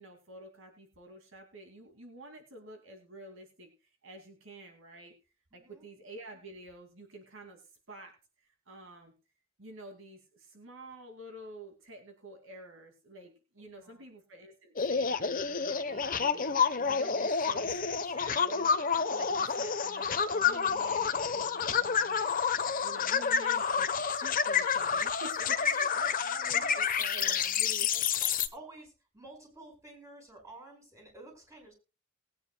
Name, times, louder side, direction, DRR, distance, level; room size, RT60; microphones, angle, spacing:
voice 1, 0.0-3.7 4.0-5.1 5.5-8.2 8.7-9.1 9.6-18.7 19.1-22.4 22.8-27.9, right 1 dB, 60° right, 4 dB, 2.4 m, -49 dB
voice 2, 5.5-5.9 13.6-14.1 22.9-23.4 25.6-26.2 26.5-27.0 27.2-27.4 27.9-31.7, right 1 dB, 15° right, 1 dB, 5.5 m, -52 dB
sound 1, 14.8-28.5, left 6 dB, 40° left, 1.0 m, -29 dB
20.0 x 9.7 x 2.2 m, 0.31 s
head